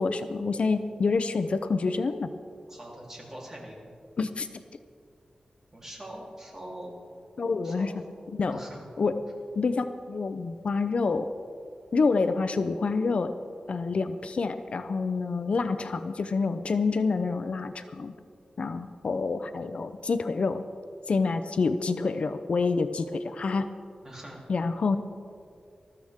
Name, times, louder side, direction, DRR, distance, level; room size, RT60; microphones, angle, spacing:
voice 1, 0.0-2.3 4.2-4.5 7.4-7.9 8.3-8.6 9.0-9.2 9.6-11.3 11.9-13.3 13.7-18.1 18.6-20.6 21.1-23.7 24.5-25.0, left 4 dB, 60° left, 10 dB, 0.6 m, -27 dB
voice 2, 2.7-3.8 5.7-6.9 7.6-7.9 8.4-8.9 24.0-24.4, right 1 dB, 20° right, -4 dB, 3.5 m, -42 dB
20.5 x 14.0 x 3.6 m, 2.4 s
wide cardioid pair, 125°, 2 cm